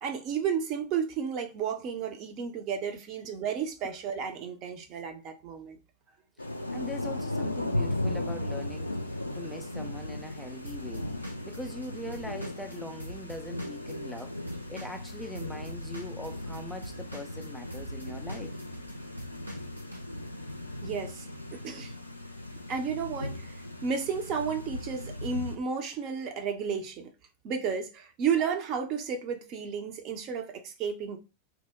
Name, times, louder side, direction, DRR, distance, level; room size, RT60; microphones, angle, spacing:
voice 1, 0.0-5.8 20.8-21.9 22.7-23.5 23.8-27.1 27.4-31.2, right 6 dB, 40° right, 0.6 m, -32 dB
Thunder / Rain, 6.4-25.6, left 1 dB, 85° left, 0.4 m, -37 dB
voice 2, 6.7-9.0 9.3-14.4 14.7-18.6, left 1 dB, ahead, 0.3 m, -42 dB
Drum kit / Drum, 10.6-14.2 14.5-20.0, right 1 dB, 85° right, 0.7 m, -45 dB
2.9 x 2.0 x 3.5 m
figure-of-eight pair, 90°, 0 cm